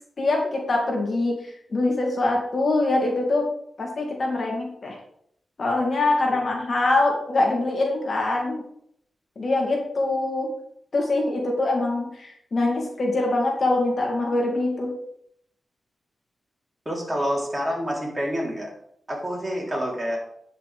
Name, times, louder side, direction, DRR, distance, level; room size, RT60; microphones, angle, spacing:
voice 1, 0.2-1.3 1.7-3.5 3.8-5.0 5.6-8.7 9.4-10.5 10.9-14.9, left 2 dB, 50° left, 0 dB, 2.6 m, -23 dB
voice 2, 16.9-18.7 19.1-20.2, equal, 20° right, -2 dB, 3.8 m, -27 dB
10.0 x 5.7 x 5.1 m, 0.69 s
cardioid pair, 85°, 0 cm